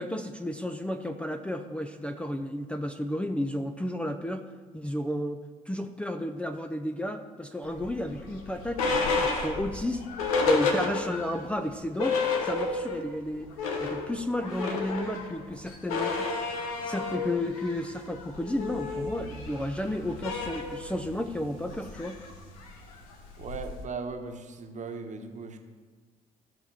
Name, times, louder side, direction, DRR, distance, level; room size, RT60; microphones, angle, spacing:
voice 1, 0.0-4.4 4.7-5.4 5.7-10.0 10.5-13.5 13.8-16.3 16.8-22.2, left 1 dB, 5° left, 7 dB, 0.7 m, -32 dB
sound 1, 7.8-11.4 11.7-11.8 12.0-13.1 13.4-23.8, left 4 dB, 80° left, 1.2 m, -31 dB
voice 2, 23.4-25.6, right 4 dB, 45° right, 5 dB, 1.3 m, -38 dB
15.0 x 5.8 x 4.8 m, 1.4 s
hypercardioid pair, 50°, 18 cm